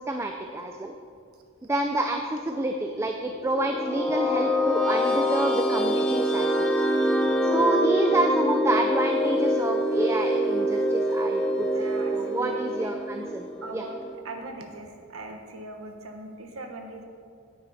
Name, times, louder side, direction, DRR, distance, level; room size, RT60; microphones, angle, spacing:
voice 1, 0.1-0.9 1.7-6.7 7.4-13.5 13.7-13.8, right 2 dB, 15° right, 4 dB, 0.4 m, -28 dB
sound 1, 3.3-14.2, equal, 5° left, 0.9 m, -25 dB
voice 2, 11.7-14.0 14.2-17.0, right 2 dB, 75° right, 4 dB, 1.2 m, -41 dB
9.6 x 9.2 x 4.2 m, 2.3 s
head